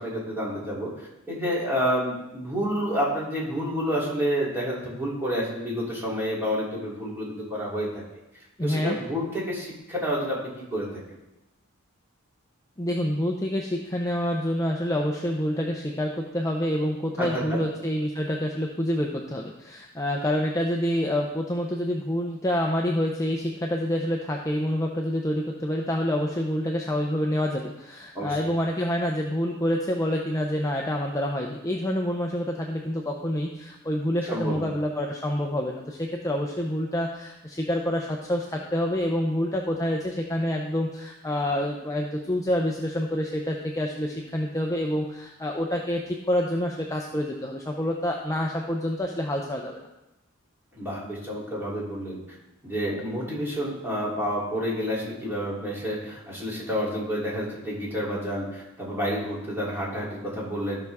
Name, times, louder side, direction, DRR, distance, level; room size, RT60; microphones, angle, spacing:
voice 1, 0.0-8.0 8.6-10.9 17.2-17.6 28.1-28.5 34.3-34.7 50.7-52.2 52.6-60.8, equal, 10° right, -6 dB, 3.0 m, -29 dB
voice 2, 8.6-9.0 12.8-49.8, left 1 dB, 15° left, 0 dB, 0.6 m, -27 dB
14.5 x 6.0 x 3.5 m, 0.93 s
head